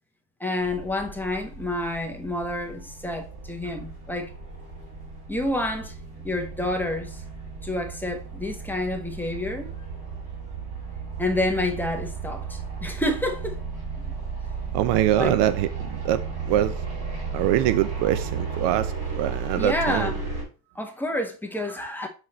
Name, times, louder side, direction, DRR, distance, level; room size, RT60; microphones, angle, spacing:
voice 1, 0.4-4.3 5.3-5.9 6.2-7.2 7.6-9.7 11.2-13.6 15.2-15.5 19.5-20.2 20.7-22.1, left 1 dB, 5° left, 1.1 m, -29 dB
sound 1, 0.6-20.4, right 5 dB, 30° right, 3.5 m, -34 dB
voice 2, 14.7-16.7 17.3-20.1, right 12 dB, 60° right, 0.6 m, -24 dB
6.5 x 4.1 x 4.2 m
supercardioid pair, 125°, 47 cm